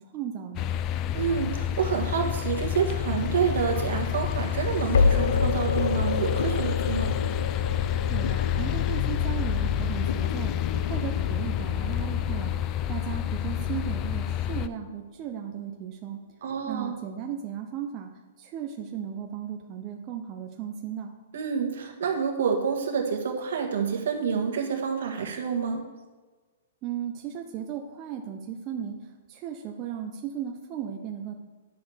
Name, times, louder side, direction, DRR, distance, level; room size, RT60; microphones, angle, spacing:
voice 1, 0.1-0.7 8.1-12.5 12.9-16.2 16.7-18.1 18.4-21.1 26.8-31.3, right 9 dB, 25° right, 2 dB, 0.6 m, -36 dB
sound 1, 0.6-14.7, left 11 dB, 25° left, 0.3 m, -29 dB
voice 2, 1.1-7.1 16.4-16.9 21.3-25.8, right 6 dB, 70° right, 3 dB, 1.5 m, -28 dB
sound 2, 3.1-14.1, left 5 dB, 80° left, 0.5 m, -30 dB
10.0 x 6.2 x 3.4 m, 1.3 s
hypercardioid pair, 160°, 0 cm